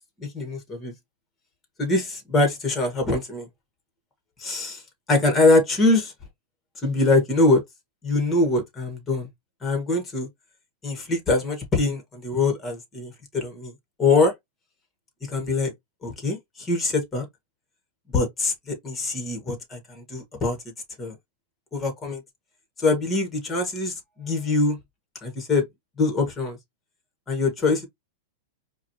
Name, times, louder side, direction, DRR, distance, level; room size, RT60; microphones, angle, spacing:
voice 1, 0.2-0.9 1.8-3.5 4.4-4.8 5.1-6.1 6.8-7.6 8.0-9.3 9.6-10.3 10.8-13.7 14.0-14.3 15.2-15.7 16.0-17.3 18.1-20.6 21.0-21.2 21.7-22.2 22.8-24.8 25.2-25.7 26.0-26.6 27.3-27.9, left 3 dB, 15° left, 1.9 m, -23 dB
4.8 x 2.6 x 3.1 m
supercardioid pair, 145°, 0 cm